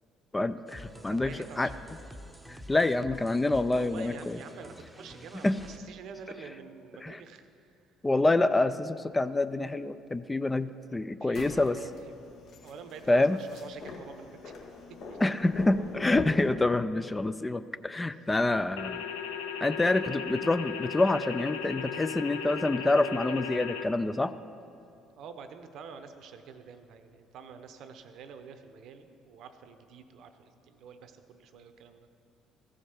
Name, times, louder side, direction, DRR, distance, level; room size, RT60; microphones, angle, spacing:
voice 1, 0.3-1.3 1.6-1.7 2.5-4.4 5.4-5.6 7.0-7.2 8.0-11.8 13.1-13.4 15.2-19.0 19.6-24.3, left 2 dB, 20° left, 13 dB, 0.4 m, -27 dB
sound 1, 0.7-5.8, equal, 10° right, 0.8 m, -48 dB
voice 2, 1.1-1.9 3.7-7.7 11.2-12.1 12.6-14.5 15.1-15.2 25.2-32.1, right 6 dB, 65° right, 8 dB, 0.7 m, -47 dB
sound 2, 11.3-16.5, left 4 dB, 60° left, 1.3 m, -42 dB
sound 3, 18.8-23.8, left 7 dB, 80° left, 0.6 m, -36 dB
14.0 x 5.1 x 5.8 m, 2.5 s
hypercardioid pair, 55°, 0 cm